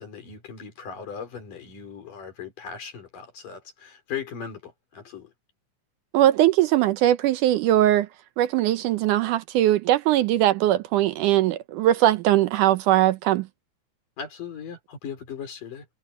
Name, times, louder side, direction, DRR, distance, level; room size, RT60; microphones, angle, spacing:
voice 1, 0.0-5.3 14.2-15.9, left 7 dB, 80° left, 5.8 m, -38 dB
voice 2, 6.1-8.1 8.4-13.5, right 13 dB, 80° right, 2.2 m, -20 dB
omnidirectional pair, 3.7 m